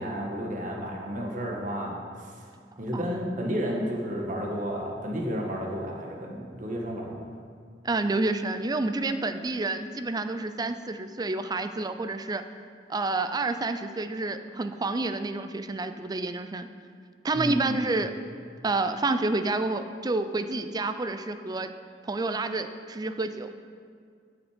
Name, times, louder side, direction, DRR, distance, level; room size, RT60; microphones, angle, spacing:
voice 1, 0.0-2.4 2.8-7.2 17.3-17.7, equal, 50° right, 0 dB, 1.6 m, -32 dB
voice 2, 7.8-12.4 12.9-16.7 17.2-18.1 18.6-21.7 22.0-23.5, right 2 dB, 25° right, 9 dB, 0.4 m, -29 dB
13.0 x 6.1 x 5.0 m, 2.1 s
head